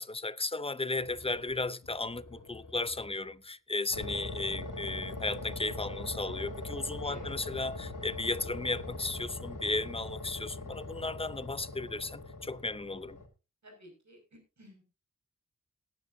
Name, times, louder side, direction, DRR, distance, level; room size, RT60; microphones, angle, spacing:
voice 1, 0.0-13.2, left 3 dB, 20° left, 0.6 m, -35 dB
sound 1, 1.0-3.3 3.9-13.3, left 2 dB, 70° left, 2.7 m, -42 dB
voice 2, 7.0-7.4 13.6-14.8, right 1 dB, 60° right, 5.9 m, -53 dB
18.5 x 10.5 x 2.7 m
wide cardioid pair, 105°, 32 cm